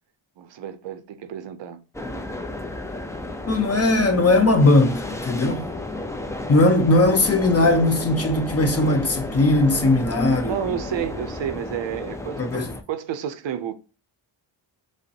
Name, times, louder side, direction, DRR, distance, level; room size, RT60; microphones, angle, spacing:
voice 1, 0.4-1.8 3.6-4.0 10.5-13.7, right 9 dB, 65° right, 0.6 m, -31 dB
sound 1, 1.9-12.8, left 2 dB, 5° left, 0.4 m, -32 dB
voice 2, 3.5-5.7 6.5-10.5 12.4-12.7, left 2 dB, 30° left, 0.7 m, -19 dB
5.1 x 2.1 x 2.7 m
cardioid pair, 75°, 49 cm